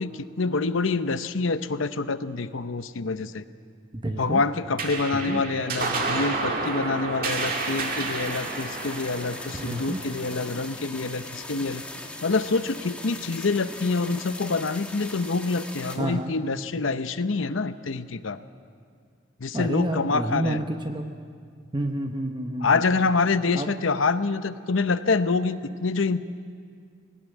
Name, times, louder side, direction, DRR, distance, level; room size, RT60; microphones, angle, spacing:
voice 1, 0.0-3.4 4.1-11.8 12.2-18.4 19.4-20.6 22.6-26.2, left 4 dB, 85° left, 12 dB, 0.7 m, -26 dB
voice 2, 3.9-4.4 5.1-5.4 9.5-10.0 16.0-16.3 19.5-21.1 21.7-22.8 23.5-23.7, right 1 dB, 25° right, 5 dB, 0.9 m, -29 dB
sound 1, 4.8-11.6, right 3 dB, 45° right, 2.2 m, -31 dB
sound 2, 7.3-16.0, left 2 dB, 5° left, 1.3 m, -40 dB
18.0 x 18.0 x 9.1 m, 2.2 s
head